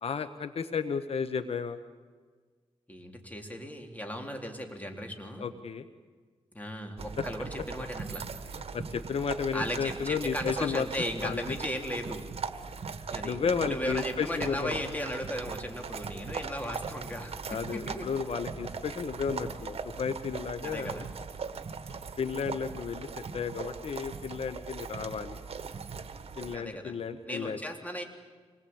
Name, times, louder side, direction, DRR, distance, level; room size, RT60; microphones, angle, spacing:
voice 1, 0.0-1.8 5.4-5.9 8.7-10.9 11.2-11.4 13.2-14.8 17.5-21.0 21.9-23.1 23.3-25.4 26.4-27.6, left 6 dB, 70° left, 11 dB, 1.1 m, -33 dB
voice 2, 2.9-5.5 6.5-8.2 9.5-12.3 13.1-13.4 13.7-18.1 20.6-21.1 26.5-26.9 27.2-28.0, equal, 15° left, 3 dB, 3.6 m, -36 dB
sound 1, 7.0-26.6, right 5 dB, 65° right, 1.5 m, -40 dB
26.0 x 20.0 x 8.7 m, 1.5 s
cardioid pair, 90°, 11 cm